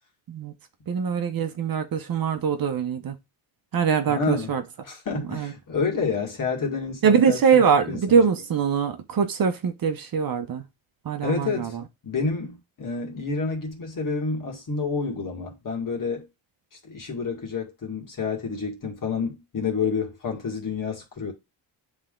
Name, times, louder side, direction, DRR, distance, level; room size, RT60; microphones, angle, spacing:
voice 1, 0.9-3.2 3.7-4.6 5.1-5.5 7.0-10.6 11.0-11.8, right 6 dB, 45° right, 0.9 m, -23 dB
voice 2, 4.1-4.5 4.8-7.6 7.9-8.2 11.2-11.8 12.0-16.3 16.8-21.3, left 4 dB, 40° left, 2.0 m, -29 dB
8.7 x 3.6 x 3.8 m
cardioid pair, 150°, 48 cm